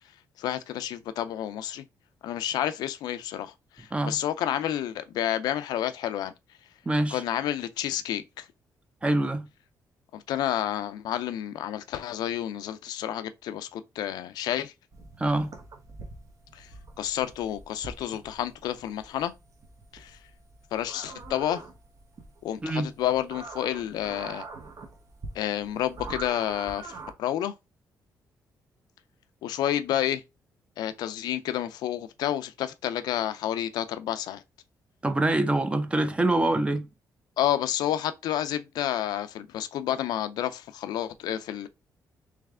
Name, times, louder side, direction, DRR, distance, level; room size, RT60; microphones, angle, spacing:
voice 1, 0.4-1.8 2.2-6.3 7.1-8.4 10.1-14.7 16.5-16.7 17.0-19.3 19.9-20.2 20.7-21.6 22.4-24.4 25.3-27.5 29.4-30.2 30.8-34.4 37.4-41.7, left 11 dB, 90° left, 0.5 m, -30 dB
voice 2, 6.9-7.2 9.0-9.5 15.2-15.5 22.6-22.9 35.0-36.9, right 2 dB, 15° right, 0.6 m, -25 dB
sound 1, 14.9-27.1, right 3 dB, 55° right, 1.1 m, -44 dB
3.3 x 3.3 x 3.6 m
cardioid pair, 100°, 7 cm